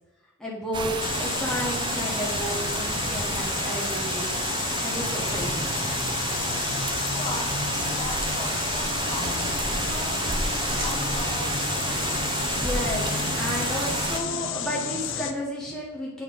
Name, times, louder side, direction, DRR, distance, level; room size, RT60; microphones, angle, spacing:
voice 1, 0.4-0.9 1.2-4.4 4.8-5.5 12.5-16.2, equal, 5° left, -5 dB, 1.2 m, -32 dB
sound 1, 0.7-14.2, right 3 dB, 20° right, 0.5 m, -29 dB
sound 2, 1.0-15.3, left 7 dB, 65° left, 0.5 m, -31 dB
voice 2, 6.4-12.0, left 1 dB, 30° left, -2 dB, 1.1 m, -39 dB
sound 3, 8.9-13.9, equal, 45° right, 1.5 m, -39 dB
7.8 x 3.2 x 5.1 m, 1.1 s
head